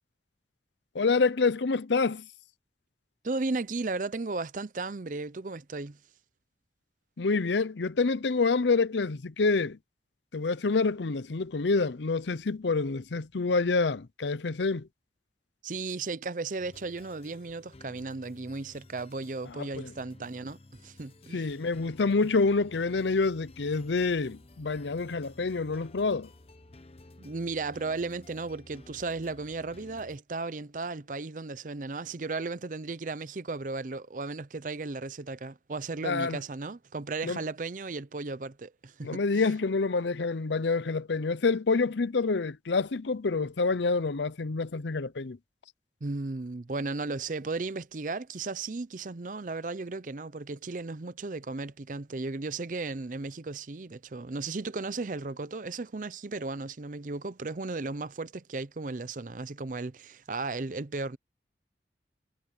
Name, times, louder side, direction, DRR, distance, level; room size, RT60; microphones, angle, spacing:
voice 1, 0.9-2.3 7.2-9.8 10.3-14.9 19.6-19.9 21.3-26.3 36.0-36.4 37.2-37.4 39.0-45.4, left 4 dB, 80° left, 0.7 m, -27 dB
voice 2, 3.2-6.0 15.6-21.5 27.2-39.4 46.0-61.2, right 3 dB, 45° right, 0.6 m, -35 dB
sound 1, 16.6-30.2, left 2 dB, 35° left, 1.0 m, -53 dB
head